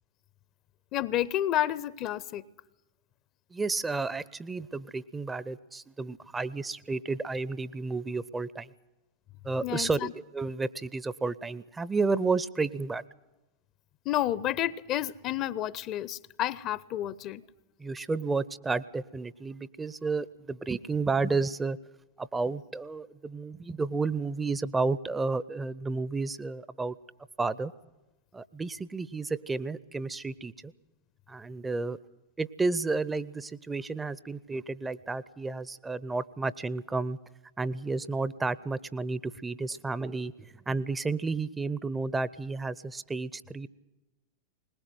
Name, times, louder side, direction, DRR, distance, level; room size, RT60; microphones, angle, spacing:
voice 1, 0.9-2.4 9.6-9.9 14.1-17.4, left 13 dB, 35° left, 0.7 m, -30 dB
voice 2, 3.5-8.7 9.4-13.0 17.8-21.8 22.2-27.0 27.4-27.7 28.3-30.7 31.3-32.0 32.4-37.2 37.6-43.7, right 3 dB, 10° right, 0.7 m, -31 dB
21.5 x 20.0 x 7.8 m
figure-of-eight pair, 90°, 0 cm